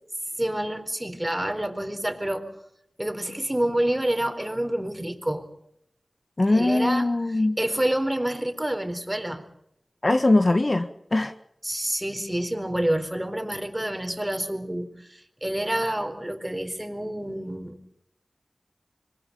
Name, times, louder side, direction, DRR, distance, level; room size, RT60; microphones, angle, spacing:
voice 1, 0.4-2.5 3.0-5.5 6.5-7.1 7.6-9.4 11.6-17.8, right 1 dB, 15° right, 7 dB, 4.2 m, -28 dB
voice 2, 6.4-7.6 10.0-11.3, left 2 dB, 40° left, 8 dB, 1.8 m, -21 dB
26.0 x 23.5 x 5.4 m, 0.75 s
cardioid pair, 45°, 0 cm